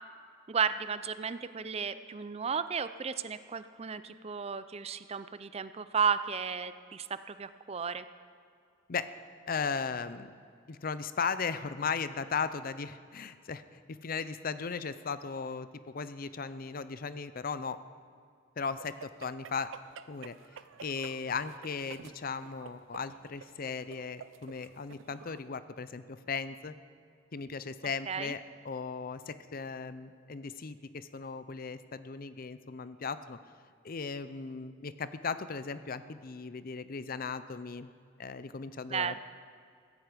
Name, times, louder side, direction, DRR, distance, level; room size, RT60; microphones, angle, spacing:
voice 1, 0.5-8.1 28.1-28.3 38.9-39.2, right 6 dB, 30° right, 13 dB, 0.5 m, -33 dB
voice 2, 9.5-10.3 10.7-17.8 18.6-19.7 20.1-20.4 20.8-26.7 27.3-33.4 33.8-37.9 38.2-39.2, left 5 dB, 50° left, 13 dB, 0.6 m, -37 dB
sound 1, 18.8-25.4, right 6 dB, 85° right, 0.5 m, -51 dB
16.0 x 14.0 x 5.1 m, 2.4 s
head